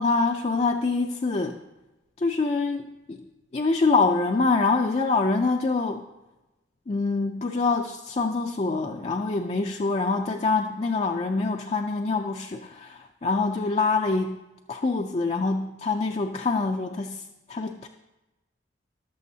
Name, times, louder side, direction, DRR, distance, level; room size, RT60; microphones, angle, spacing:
voice 1, 0.0-1.6 2.2-3.2 3.5-6.0 6.9-14.4 14.7-17.9, left 3 dB, 35° left, 2 dB, 0.4 m, -25 dB
18.0 x 6.8 x 2.8 m, 1.0 s
head